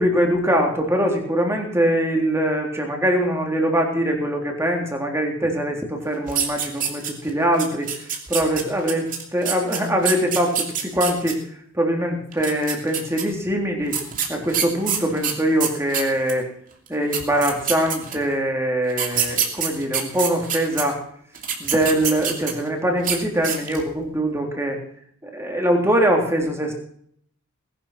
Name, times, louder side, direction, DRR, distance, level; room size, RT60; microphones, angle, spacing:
voice 1, 0.0-8.0 8.3-11.4 11.7-14.0 14.3-16.5 16.9-21.0 21.6-24.8 25.2-26.7, right 1 dB, 10° right, 1 dB, 3.5 m, -22 dB
sound 1, 6.3-7.3 7.6-11.3 12.3-13.2 13.9-16.4 16.9-17.0 17.1-18.3 18.9-20.8 21.3-22.7 23.0-23.2 23.4-23.9, right 8 dB, 40° right, 3.0 m, -25 dB
19.5 x 11.0 x 5.9 m, 0.64 s
head